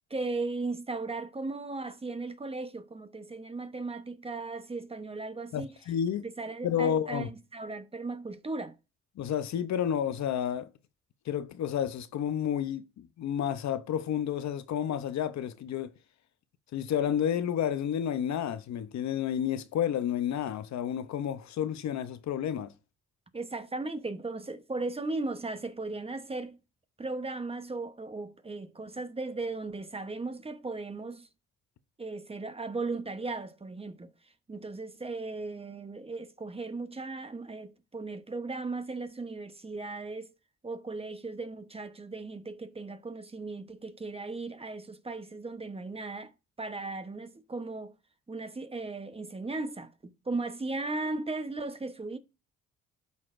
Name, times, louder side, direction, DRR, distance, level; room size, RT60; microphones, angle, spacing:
voice 1, 0.1-5.7 6.2-8.8 23.3-26.6 27.0-31.3 32.0-34.1 34.5-40.3 40.6-46.3 46.6-47.9 48.3-52.2, right 3 dB, 20° right, 0.9 m, -37 dB
voice 2, 5.5-6.2 6.6-7.3 9.2-10.7 11.3-15.9 16.7-22.7, left 9 dB, 65° left, 0.7 m, -30 dB
12.0 x 4.1 x 2.5 m
cardioid pair, 90°, 30 cm